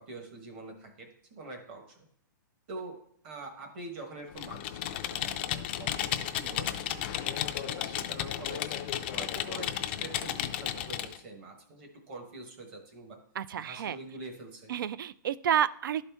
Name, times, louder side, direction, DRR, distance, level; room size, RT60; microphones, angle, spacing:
voice 1, 0.0-2.1 2.7-3.0 3.2-8.6 9.1-13.2 13.6-14.7, right 2 dB, 35° right, 4 dB, 1.3 m, -45 dB
Computer keyboard, 4.3-11.2, left 11 dB, 30° left, 0.3 m, -33 dB
voice 2, 13.4-14.0 14.7-16.1, right 9 dB, 75° right, 18 dB, 0.4 m, -30 dB
11.5 x 4.1 x 3.5 m, 0.64 s
hypercardioid pair, 175°, 11 cm